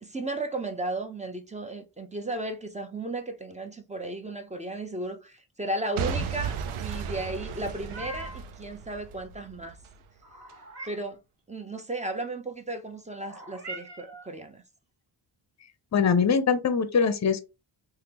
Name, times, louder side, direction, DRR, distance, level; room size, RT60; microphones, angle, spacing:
voice 1, 0.0-9.8 10.8-11.2 11.5-14.6, right 2 dB, 15° right, 0.7 m, -35 dB
Boom / Shatter / Crushing, 6.0-10.0 10.5-10.6, right 6 dB, 80° right, 0.6 m, -34 dB
Meow, 7.6-8.5 10.2-11.2 13.2-14.3, right 2 dB, 50° right, 1.9 m, -42 dB
voice 2, 15.9-17.4, left 6 dB, 35° left, 0.6 m, -22 dB
3.5 x 2.3 x 2.9 m
cardioid pair, 55°, 50 cm